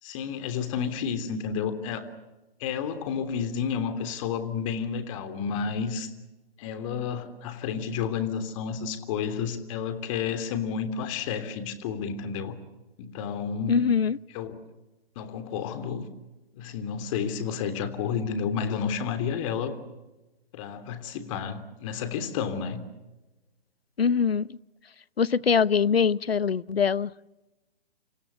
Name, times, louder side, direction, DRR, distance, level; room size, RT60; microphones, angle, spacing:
voice 1, 0.0-2.1 2.6-6.1 6.6-12.6 13.0-13.8 14.3-14.6 15.1-16.1 16.5-19.8 20.5-22.9, left 7 dB, 35° left, 10 dB, 3.2 m, -31 dB
voice 2, 13.7-14.2 24.0-24.6 25.2-27.1, left 6 dB, 80° left, 21 dB, 0.9 m, -23 dB
28.5 x 27.5 x 6.9 m, 1.1 s
figure-of-eight pair, 130°, 30 cm